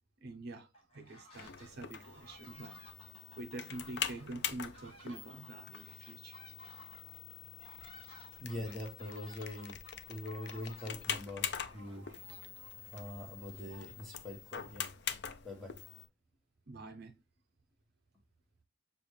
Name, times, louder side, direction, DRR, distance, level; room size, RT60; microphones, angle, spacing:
voice 1, 0.2-2.8 3.4-6.4 16.7-17.1, right 2 dB, 50° right, 0.5 m, -46 dB
sound 1, 0.7-1.7 2.0-14.3, equal, 30° left, 1.1 m, -58 dB
sound 2, 1.3-16.1, left 8 dB, 55° left, 0.4 m, -44 dB
voice 2, 8.4-9.8 10.1-12.0 12.9-14.9 15.4-15.7, left 1 dB, ahead, 1.2 m, -43 dB
6.8 x 2.4 x 3.1 m
head